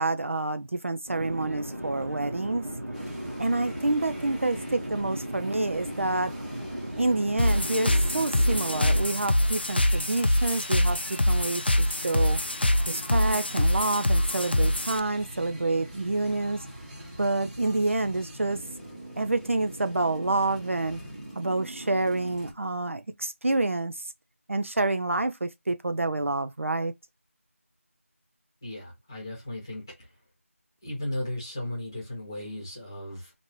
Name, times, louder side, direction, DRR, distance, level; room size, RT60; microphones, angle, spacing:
voice 1, 0.0-2.6 3.4-6.3 7.0-12.4 12.9-16.6 17.2-18.6 19.2-21.0 21.4-24.0 24.5-26.9, right 2 dB, 60° right, 0.3 m, -28 dB
Conversation / Chatter / Fixed-wing aircraft airplane, 1.1-9.0, equal, 80° right, 0.9 m, -36 dB
sound 1, 2.9-22.5, right 1 dB, 30° right, 1.2 m, -43 dB
sound 2, 7.4-15.0, left 1 dB, 45° left, 0.4 m, -24 dB
voice 2, 28.6-30.1 30.8-33.3, left 1 dB, 15° left, 1.0 m, -36 dB
2.9 x 2.5 x 3.0 m
figure-of-eight pair, 175°, 8 cm